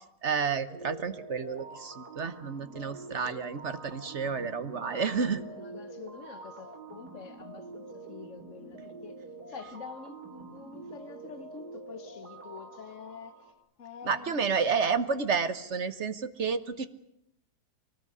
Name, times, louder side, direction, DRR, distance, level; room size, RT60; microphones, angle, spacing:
voice 1, 0.2-5.4 14.0-16.9, right 5 dB, 45° right, 1.4 m, -30 dB
sound 1, 0.7-13.5, right 3 dB, 65° right, 4.2 m, -46 dB
voice 2, 4.8-9.2 9.5-13.5 13.8-14.5, left 6 dB, 50° left, 1.5 m, -47 dB
23.5 x 19.0 x 9.7 m
omnidirectional pair, 1.8 m